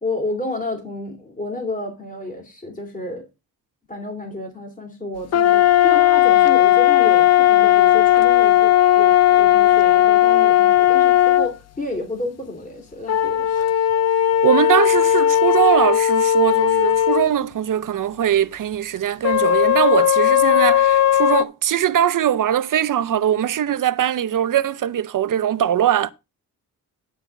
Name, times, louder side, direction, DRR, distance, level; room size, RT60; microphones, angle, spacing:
voice 1, 0.0-3.2 3.9-13.6, left 2 dB, 20° left, 2.9 m, -30 dB
sound 1, 5.3-11.5 13.1-17.3 19.2-21.4, left 12 dB, 45° left, 0.5 m, -16 dB
voice 2, 14.4-26.1, right 10 dB, 60° right, 0.7 m, -21 dB
10.0 x 4.1 x 6.9 m
wide cardioid pair, 110°, 36 cm